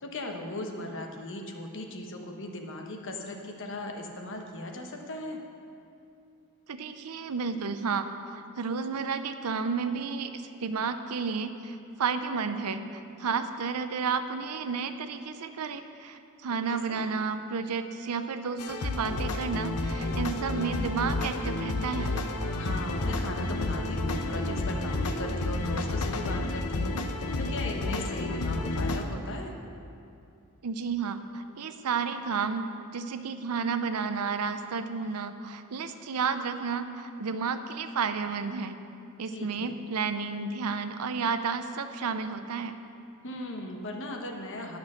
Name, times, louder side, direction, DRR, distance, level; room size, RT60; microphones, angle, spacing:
voice 1, 0.0-5.4 16.5-17.0 22.6-27.0 27.4-29.6 39.3-39.7 43.2-44.8, left 1 dB, 55° left, 3 dB, 1.1 m, -38 dB
voice 2, 6.7-22.1 30.6-38.8 39.2-42.8, right 5 dB, 85° right, 9 dB, 0.6 m, -32 dB
sound 1, 18.6-29.0, left 2 dB, 85° left, 0.7 m, -30 dB
10.5 x 6.2 x 6.2 m, 2.6 s
head